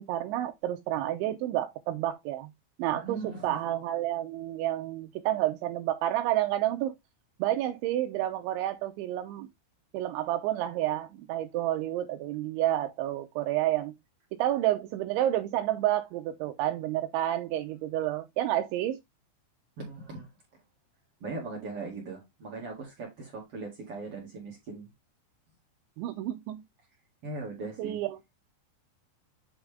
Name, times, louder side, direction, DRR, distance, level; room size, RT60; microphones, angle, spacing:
voice 1, 0.0-2.5 2.8-6.9 7.4-9.5 9.9-13.9 14.3-19.0 26.0-26.6 27.8-28.2, right 13 dB, 80° right, 2.9 m, -30 dB
voice 2, 2.9-3.6 19.8-20.6 21.2-24.9 27.2-28.0, right 3 dB, 45° right, 2.0 m, -39 dB
8.9 x 4.9 x 3.4 m
omnidirectional pair, 5.6 m